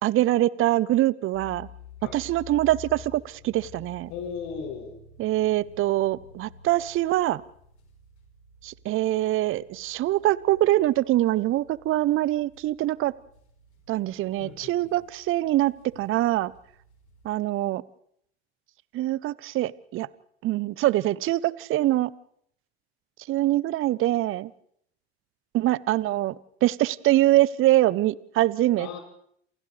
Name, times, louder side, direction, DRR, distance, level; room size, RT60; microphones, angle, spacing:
voice 1, 0.0-1.7 2.1-4.1 5.2-7.4 8.6-13.1 13.9-16.5 17.2-17.8 18.9-20.1 20.4-22.1 23.3-24.5 25.5-26.4 26.6-29.0, right 15 dB, 40° right, 21 dB, 0.7 m, -24 dB
sound 1, 1.3-17.3, left 5 dB, 85° left, 4.4 m, -50 dB
voice 2, 4.1-5.0 14.4-14.9 28.8-29.0, left 6 dB, 60° left, 1 dB, 7.3 m, -37 dB
28.5 x 28.0 x 3.3 m, 0.69 s
hypercardioid pair, 75°, 33 cm